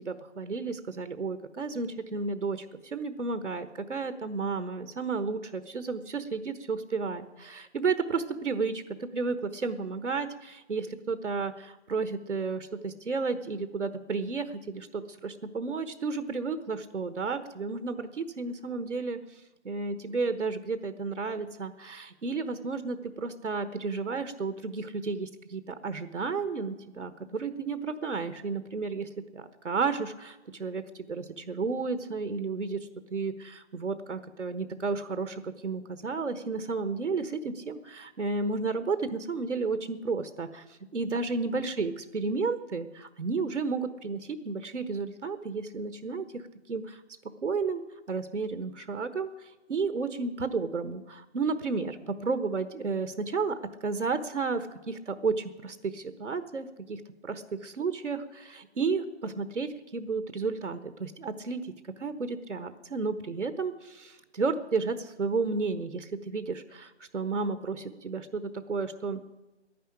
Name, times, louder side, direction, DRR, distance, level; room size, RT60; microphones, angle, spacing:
voice 1, 0.0-19.2 19.6-46.4 46.7-47.0 47.4-47.8 48.1-61.7 62.0-69.2, right 4 dB, 80° right, 11 dB, 1.2 m, -32 dB
11.0 x 10.0 x 10.0 m, 1.1 s
figure-of-eight pair, 165°, 35 cm